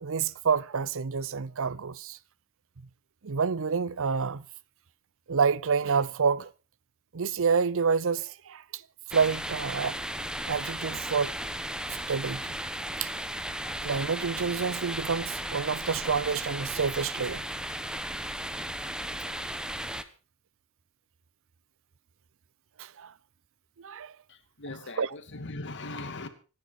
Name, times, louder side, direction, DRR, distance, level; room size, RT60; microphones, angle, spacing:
voice 1, 0.0-2.2 3.2-4.4 5.3-6.5 7.1-8.6 9.1-10.0 10.5-11.3 12.1-12.6 13.0-13.1 13.8-17.4 22.8-23.1 23.8-24.1 25.0-25.1, right 5 dB, 65° right, 0.7 m, -28 dB
sound 1, 9.1-20.0, right 1 dB, 5° right, 1.1 m, -35 dB
voice 2, 24.3-26.3, left 2 dB, 55° left, 2.5 m, -39 dB
26.0 x 10.5 x 4.2 m
head